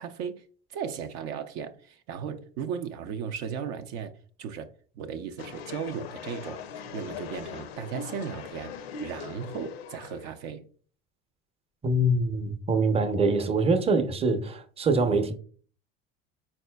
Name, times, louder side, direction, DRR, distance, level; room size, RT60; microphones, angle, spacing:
voice 1, 0.0-8.7 9.0-10.7, right 7 dB, 60° right, 0.5 m, -36 dB
sound 1, 5.4-10.3, left 6 dB, 90° left, 0.5 m, -40 dB
voice 2, 11.8-15.3, right 2 dB, 20° right, 0.6 m, -24 dB
4.2 x 4.2 x 2.2 m
hypercardioid pair, 85°, 30 cm